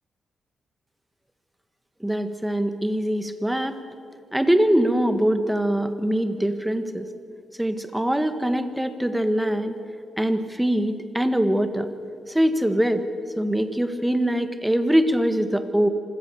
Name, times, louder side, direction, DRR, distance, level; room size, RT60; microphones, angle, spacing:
voice 1, 2.0-3.8 4.3-7.1 7.6-9.8 10.2-11.9 12.3-13.0 13.4-15.9, equal, 5° right, 9 dB, 1.6 m, -23 dB
26.0 x 17.0 x 7.1 m, 2.4 s
cardioid pair, 90°, 0 cm